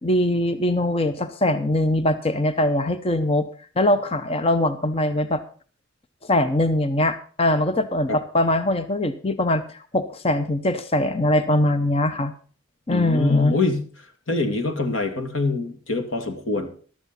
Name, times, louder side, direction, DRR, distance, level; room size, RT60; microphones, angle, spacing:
voice 1, 0.0-3.5 3.8-5.4 6.2-12.3 12.9-13.6, left 1 dB, 30° left, 11 dB, 0.7 m, -22 dB
voice 2, 12.9-13.9 14.3-16.7, left 3 dB, 65° left, 7 dB, 2.3 m, -24 dB
14.0 x 12.0 x 4.1 m, 0.41 s
head